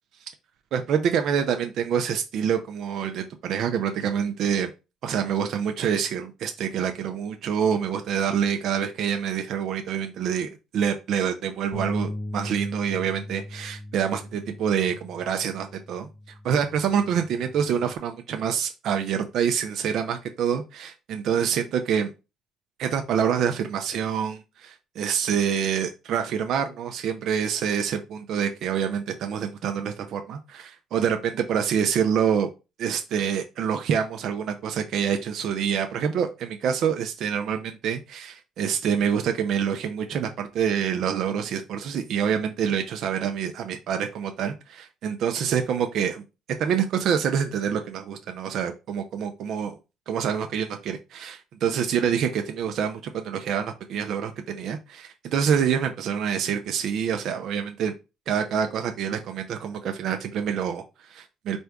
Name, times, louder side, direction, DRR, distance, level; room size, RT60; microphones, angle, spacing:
voice 1, 0.7-4.7 5.0-16.1 16.4-22.1 22.8-32.5 32.8-46.2 46.6-49.7 50.1-57.9 58.3-61.6, right 8 dB, 65° right, 6 dB, 0.5 m, -26 dB
Bass guitar, 11.7-18.0, left 1 dB, 5° left, 0.7 m, -38 dB
4.4 x 2.6 x 3.5 m, 0.28 s
cardioid pair, 100°, 0 cm